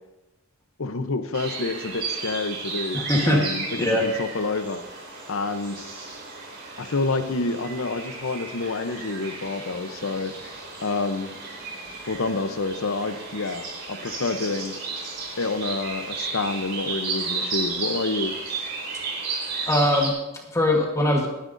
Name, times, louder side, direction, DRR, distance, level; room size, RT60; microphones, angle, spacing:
voice 1, 0.8-4.8 5.3-5.8 6.8-10.5 10.8-11.3 12.1-14.7 15.4-18.3, left 3 dB, 70° left, 10 dB, 0.8 m, -28 dB
sound 1, 1.3-20.1, right 4 dB, 55° right, 4.2 m, -33 dB
voice 2, 2.9-3.4 3.8-4.1 19.7-21.3, left 1 dB, 15° left, 0 dB, 1.3 m, -22 dB
19.5 x 10.0 x 2.6 m, 1.0 s
head